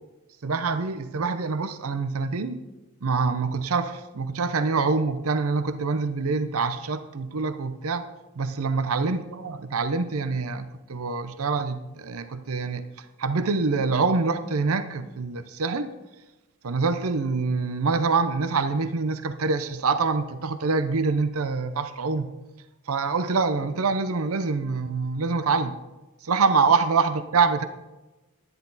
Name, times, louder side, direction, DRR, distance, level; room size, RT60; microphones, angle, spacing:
voice 1, 0.4-2.6 3.0-8.1 8.4-12.8 13.2-15.9 16.6-22.3 22.9-25.7 26.2-27.7, right 4 dB, 85° right, 10 dB, 0.7 m, -25 dB
11.0 x 10.0 x 4.0 m, 1.1 s
head